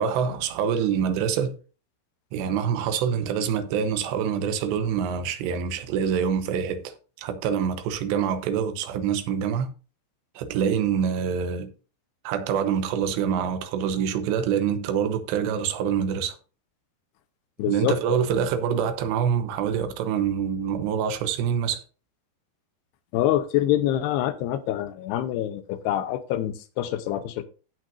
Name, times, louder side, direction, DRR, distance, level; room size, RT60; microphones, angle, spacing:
voice 1, 0.0-1.5 2.3-9.7 10.4-11.7 12.2-16.4 17.7-21.8, right 7 dB, 90° right, 3.2 m, -25 dB
voice 2, 17.6-18.2 23.1-27.4, left 12 dB, 85° left, 2.7 m, -26 dB
16.5 x 6.0 x 2.6 m
omnidirectional pair, 4.9 m